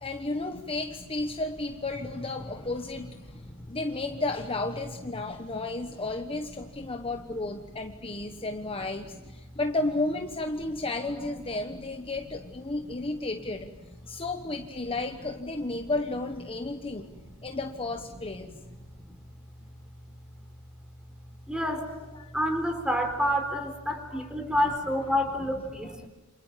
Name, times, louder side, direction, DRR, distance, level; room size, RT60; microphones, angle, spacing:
voice 1, 0.0-13.7 14.1-17.1 17.4-18.6 22.1-22.3 24.1-24.3, left 2 dB, 25° left, 5 dB, 1.2 m, -33 dB
voice 2, 3.3-3.6 5.2-5.6 8.3-8.5 18.6-18.7 21.5-21.9 22.3-26.1, equal, 5° right, 6 dB, 4.0 m, -29 dB
29.0 x 27.0 x 7.5 m, 1.3 s
head